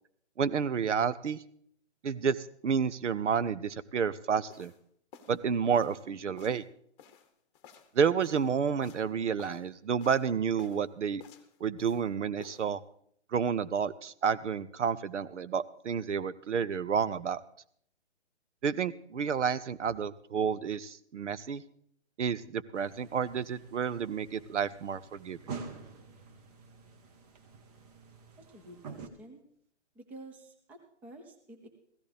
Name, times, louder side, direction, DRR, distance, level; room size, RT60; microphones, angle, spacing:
voice 1, 0.4-1.4 2.0-2.4 2.6-4.7 5.3-6.6 7.9-11.2 11.6-12.8 13.3-17.4 18.6-21.6 22.2-25.4, right 6 dB, 80° right, 16 dB, 0.7 m, -30 dB
sound 1, 4.5-4.8 5.1-5.4 5.7-6.0 6.4-6.7 7.0-8.5 8.8-9.1 9.4-9.7 10.0-10.3 10.6-10.9 11.2-12.1 12.4-12.7, left 8 dB, 25° left, 1.0 m, -53 dB
sound 2, 22.7-29.1, right 5 dB, 35° right, 1.1 m, -47 dB
voice 2, 28.4-29.4 29.9-31.7, right 1 dB, 5° right, 4 dB, 0.5 m, -51 dB
16.0 x 13.5 x 3.4 m, 0.66 s
hypercardioid pair, 140°, 35 cm